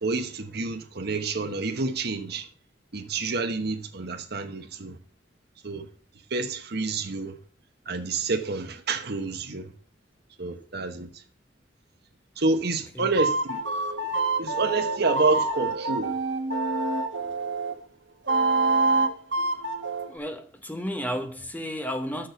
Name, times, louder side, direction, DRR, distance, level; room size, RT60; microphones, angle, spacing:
voice 1, 0.0-2.5 2.9-5.0 5.6-5.9 6.3-7.4 7.9-9.7 10.4-11.1 12.4-13.6 14.4-16.1, right 3 dB, 60° right, 1.1 m, -28 dB
voice 2, 12.7-13.2 20.1-22.3, equal, 10° left, 0.9 m, -33 dB
sound 1, 13.2-17.7 18.3-20.1, right 3 dB, 85° right, 1.2 m, -26 dB
6.4 x 6.3 x 6.8 m
head